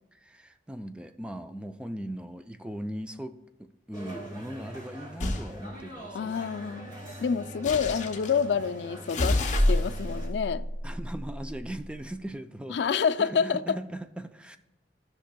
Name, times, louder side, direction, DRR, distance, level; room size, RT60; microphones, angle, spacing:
voice 1, 0.1-6.2 10.8-12.8 13.2-14.6, right 1 dB, 5° right, 0.3 m, -39 dB
sound 1, 3.9-10.3, equal, 25° right, 2.7 m, -43 dB
sound 2, 5.2-5.5 7.6-8.4 9.1-11.7, left 1 dB, 45° left, 0.8 m, -28 dB
voice 2, 6.1-6.9 7.2-9.4 9.7-10.6 12.7-13.8, left 6 dB, 75° left, 0.4 m, -27 dB
13.0 x 5.8 x 2.2 m
head